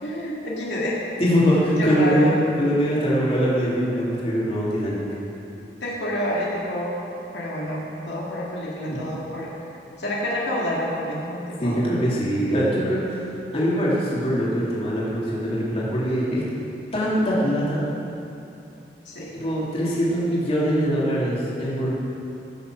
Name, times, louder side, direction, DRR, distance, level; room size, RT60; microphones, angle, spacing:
voice 1, 0.0-1.0 1.8-2.4 5.8-6.9 7.3-9.5 10.0-11.8 19.1-19.3, left 1 dB, 80° left, -5 dB, 2.2 m, -28 dB
voice 2, 1.2-5.0 11.6-13.2 13.5-16.4 16.9-17.8 19.3-21.9, equal, 35° left, -7 dB, 2.9 m, -22 dB
15.0 x 7.1 x 6.2 m, 2.7 s
head